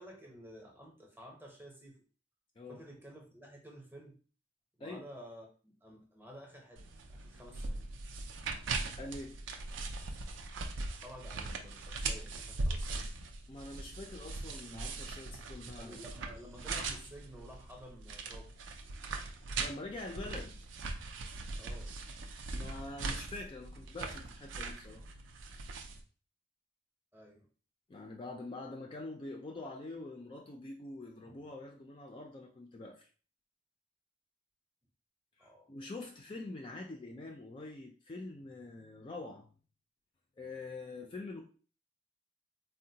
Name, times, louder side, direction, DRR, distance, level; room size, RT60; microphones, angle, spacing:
voice 1, 0.0-2.0 2.7-4.2 4.8-6.8 7.1-7.8 11.0-13.1 15.8-18.5 21.6-21.9 27.1-27.5 31.2-31.5 35.4-35.7 41.0-41.1, equal, 10° right, 0 dB, 0.7 m, -52 dB
sound 1, 6.8-26.0, right 3 dB, 85° right, 0.4 m, -40 dB
voice 2, 9.0-9.4 13.5-16.0 19.2-20.6 22.5-25.1 27.9-33.1 35.4-39.5 40.4-41.4, left 2 dB, 30° left, 1 dB, 0.3 m, -45 dB
3.7 x 2.1 x 2.7 m, 0.39 s
head